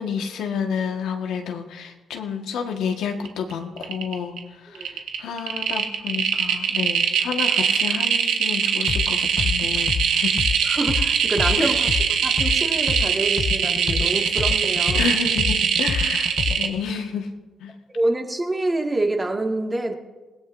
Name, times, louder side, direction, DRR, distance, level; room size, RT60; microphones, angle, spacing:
voice 1, 0.0-4.4 4.6-10.3 11.6-11.8 14.9-17.3 17.6-17.7, left 6 dB, 80° left, 3 dB, 1.6 m, -30 dB
sound 1, 3.2-3.5 3.8-4.4 4.7-16.7, right 7 dB, 80° right, 1.8 m, -22 dB
sound 2, 8.9-9.1 9.4-13.1 13.4-16.8, left 6 dB, 45° left, 0.7 m, -26 dB
voice 2, 10.6-11.9 12.2-15.1 17.9-19.9, right 2 dB, 20° right, 2 dB, 2.0 m, -26 dB
28.0 x 17.5 x 2.7 m, 1.3 s
cardioid pair, 90°, 0 cm